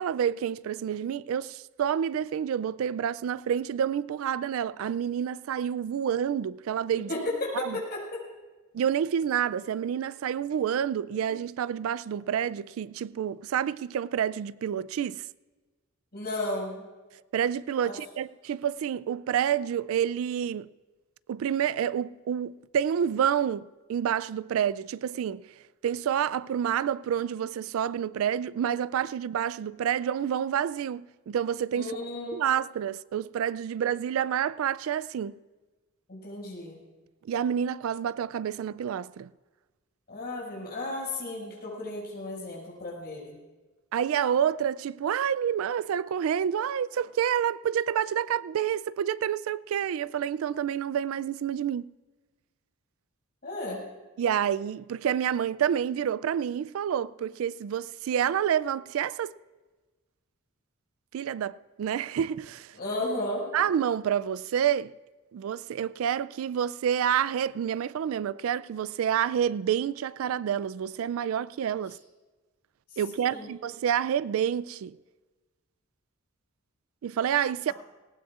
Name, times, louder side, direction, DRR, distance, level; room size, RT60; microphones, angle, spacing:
voice 1, 0.0-7.1 7.6-7.8 8.7-15.2 17.3-20.7 21.3-25.4 25.8-32.0 32.3-35.3 37.3-39.3 43.9-51.9 54.2-59.3 61.1-62.7 63.5-64.9 65.3-72.0 73.0-75.0 77.0-77.7, right 9 dB, 75° right, 0.3 m, -28 dB
voice 2, 7.1-8.2 11.1-11.2 16.1-16.9 17.8-18.0 31.7-32.4 36.1-36.8 40.1-43.3 53.4-53.8 62.8-63.5 73.2-73.5 77.7-77.8, left 2 dB, 50° left, 5.7 m, -34 dB
19.0 x 18.5 x 2.4 m
head